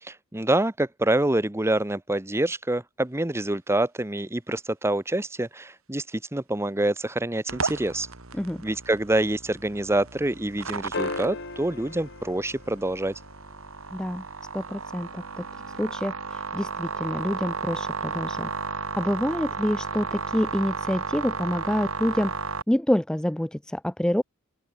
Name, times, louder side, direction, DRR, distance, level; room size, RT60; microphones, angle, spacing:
voice 1, 0.0-8.1 8.6-13.1, right 1 dB, 10° right, 1.1 m, -26 dB
sound 1, 7.5-22.6, right 4 dB, 70° right, 3.5 m, -34 dB
sound 2, 10.9-13.5 15.7-15.8, left 3 dB, 55° left, 2.5 m, -36 dB
voice 2, 13.9-14.2 14.5-15.5 15.8-18.5 19.0-22.3 22.7-24.2, equal, 5° left, 0.3 m, -27 dB
open air
head